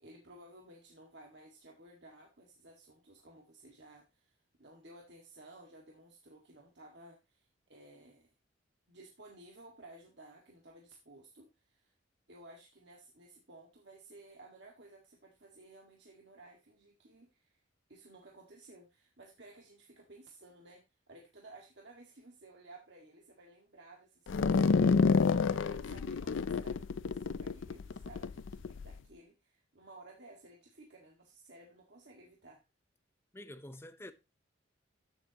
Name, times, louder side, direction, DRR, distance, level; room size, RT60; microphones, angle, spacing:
voice 1, 0.0-8.3 8.9-11.9 12.3-17.6 17.9-32.6, right 2 dB, 60° right, 1.8 m, -56 dB
sound 1, 24.3-28.9, left 5 dB, 75° left, 0.4 m, -29 dB
voice 2, 33.3-34.1, left 1 dB, 15° left, 0.7 m, -47 dB
14.5 x 7.1 x 2.9 m
head